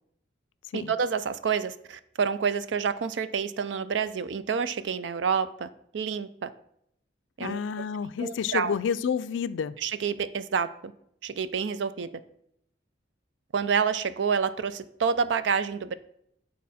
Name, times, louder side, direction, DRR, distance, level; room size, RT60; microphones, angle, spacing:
voice 1, 0.7-5.7 5.9-6.5 7.4-7.6 8.2-8.7 9.8-10.9 11.2-12.1 13.5-16.0, right 6 dB, 70° right, 0.4 m, -28 dB
voice 2, 7.4-9.8, left 7 dB, 75° left, 0.3 m, -29 dB
8.3 x 4.2 x 4.2 m
head